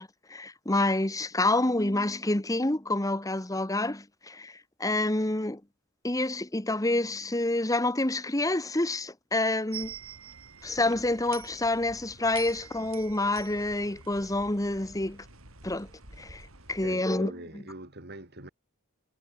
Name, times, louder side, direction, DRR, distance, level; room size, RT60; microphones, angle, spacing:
voice 1, 0.0-4.5 4.8-5.6 6.0-9.9 10.6-15.2 15.6-15.9 16.2-16.4 16.7-17.3, left 2 dB, 15° left, 1.4 m, -28 dB
sound 1, 9.7-16.9, right 7 dB, 75° right, 6.8 m, -47 dB
voice 2, 16.5-18.5, right 1 dB, 50° right, 4.5 m, -43 dB
head